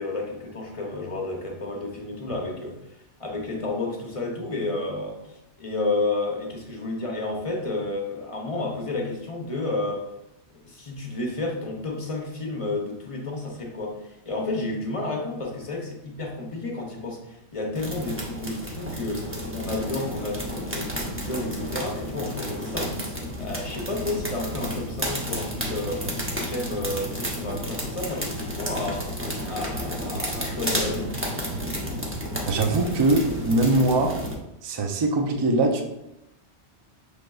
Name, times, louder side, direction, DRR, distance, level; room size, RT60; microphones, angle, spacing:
voice 1, 0.0-10.0 10.6-23.0 23.4-26.0 26.3-29.1 29.5-31.1, left 2 dB, 35° left, -1 dB, 0.7 m, -31 dB
sound 1, 17.7-34.4, equal, 15° right, 0.6 m, -31 dB
voice 2, 32.5-34.2 34.6-35.8, right 2 dB, 45° right, 4 dB, 0.3 m, -22 dB
6.2 x 3.3 x 2.3 m, 0.86 s
omnidirectional pair, 1.2 m